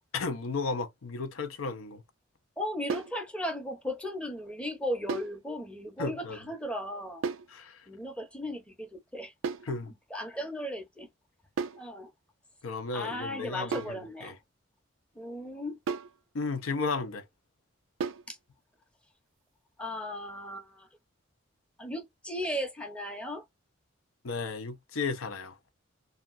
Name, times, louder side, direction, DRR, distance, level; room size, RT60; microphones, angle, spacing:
voice 1, 0.1-2.0 6.0-6.4 7.5-7.9 9.6-9.9 12.6-14.4 16.3-17.2 24.2-25.6, left 4 dB, 90° left, 0.6 m, -34 dB
voice 2, 2.6-7.2 7.9-9.3 9.7-9.8 10.1-11.1 11.7-12.1 12.9-14.3 15.2-15.8 18.3-18.4 19.8-20.9 21.8-23.4, left 1 dB, 5° left, 0.6 m, -36 dB
sound 1, 2.9-3.2 5.1-5.4 7.2-7.5 9.4-9.7 11.6-11.9 13.7-14.0 15.9-16.2 18.0-18.3, right 5 dB, 80° right, 0.4 m, -34 dB
2.7 x 2.4 x 2.4 m
head